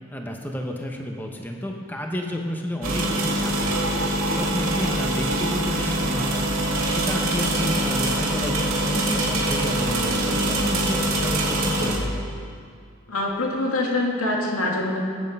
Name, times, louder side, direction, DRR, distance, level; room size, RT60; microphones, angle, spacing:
voice 1, 0.1-3.9 4.3-12.2, equal, 10° left, 1 dB, 0.9 m, -31 dB
sound 1, 2.8-12.0, right 1 dB, 85° right, 2.7 m, -24 dB
voice 2, 13.1-15.0, left 2 dB, 90° left, -1 dB, 2.4 m, -24 dB
19.5 x 8.9 x 5.5 m, 2.3 s
head